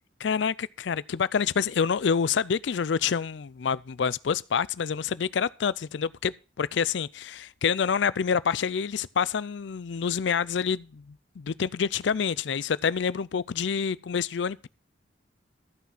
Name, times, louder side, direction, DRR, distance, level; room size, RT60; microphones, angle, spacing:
voice 1, 0.2-14.7, left 6 dB, 65° left, 0.4 m, -27 dB
13.5 x 5.9 x 5.6 m
head